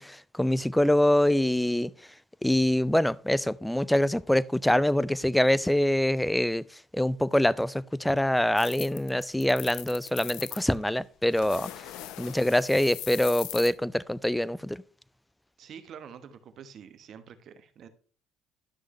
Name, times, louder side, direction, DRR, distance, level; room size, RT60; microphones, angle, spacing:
voice 1, 0.0-1.9 2.4-6.6 6.9-11.7 12.2-14.8, left 1 dB, 5° left, 0.4 m, -25 dB
sound 1, 8.6-10.7 11.3-13.7, left 13 dB, 80° left, 0.7 m, -40 dB
voice 2, 15.6-17.9, right 7 dB, 55° right, 1.1 m, -47 dB
11.5 x 6.2 x 3.1 m
supercardioid pair, 85°, 0 cm